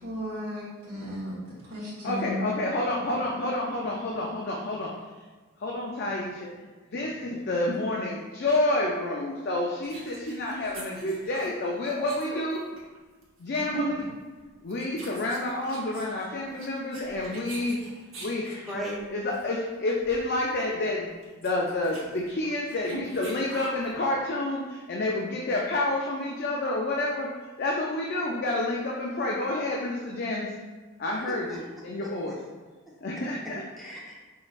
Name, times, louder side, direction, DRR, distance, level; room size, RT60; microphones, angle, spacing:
voice 1, 0.0-1.3 1.7-2.5, equal, 40° right, -8 dB, 1.3 m, -34 dB
voice 2, 2.0-4.9 5.6-6.5 6.9-12.6 13.4-14.1 14.6-17.8 18.2-18.6 19.1-21.1 21.4-27.3 27.6-30.6 31.0-32.3 33.0-33.6, left 2 dB, 45° left, -2 dB, 0.4 m, -29 dB
sound 1, 9.8-13.0 13.2-13.5 14.2-14.4 14.7-19.0 19.3-19.5 19.8-19.9 20.0-20.3 20.6-20.7 21.1-23.9, right 1 dB, 60° right, 0.9 m, -45 dB
voice 3, 17.0-17.5 18.7-19.0 31.3-31.6 32.0-32.1 32.9-33.0 33.4-34.1, equal, ahead, -6 dB, 0.6 m, -38 dB
4.7 x 3.0 x 2.4 m, 1.3 s
head